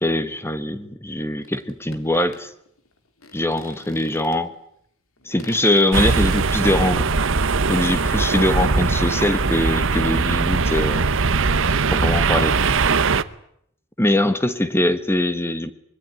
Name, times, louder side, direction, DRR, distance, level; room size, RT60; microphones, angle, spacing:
voice 1, 0.0-2.5 3.3-4.5 5.2-7.1 7.7-11.1 11.9-12.7 14.0-15.7, left 1 dB, 10° left, 11 dB, 1.4 m, -22 dB
sound 1, 1.4-4.6 5.2-7.4, left 3 dB, 75° left, 3.6 m, -44 dB
sound 2, 5.9-13.2, right 4 dB, 65° right, 1.0 m, -20 dB
24.5 x 22.0 x 9.7 m, 0.72 s
head